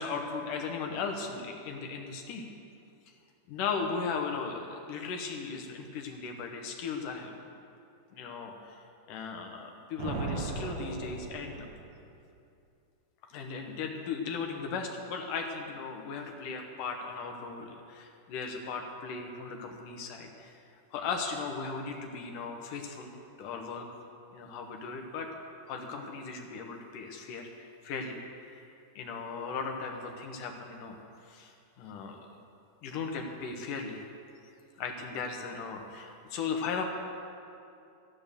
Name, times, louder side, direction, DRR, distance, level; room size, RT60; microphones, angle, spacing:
voice 1, 0.0-2.4 3.5-7.5 8.1-11.7 13.3-20.6 20.9-23.1 23.4-23.9 24.3-25.3 25.7-28.2 28.5-28.7 29.0-32.3 32.8-34.0 34.8-36.8, left 5 dB, 85° left, 3 dB, 2.8 m, -37 dB
Thunder, 10.0-12.2, right 3 dB, 50° right, 1.4 m, -37 dB
12.5 x 10.5 x 6.7 m, 2.5 s
omnidirectional pair, 3.6 m